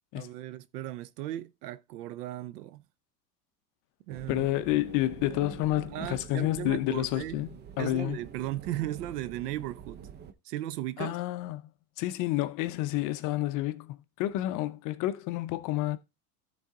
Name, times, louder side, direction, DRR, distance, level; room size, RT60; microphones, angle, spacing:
voice 1, 0.1-2.8 4.1-4.5 5.9-7.4 7.8-10.0 10.4-11.2, right 14 dB, 85° right, 0.8 m, -36 dB
sound 1, 4.1-10.3, right 7 dB, 25° right, 0.5 m, -46 dB
voice 2, 4.3-7.5 7.8-8.2 11.0-11.6 12.0-16.0, left 15 dB, 45° left, 0.7 m, -29 dB
12.0 x 4.1 x 3.7 m
supercardioid pair, 130°, 46 cm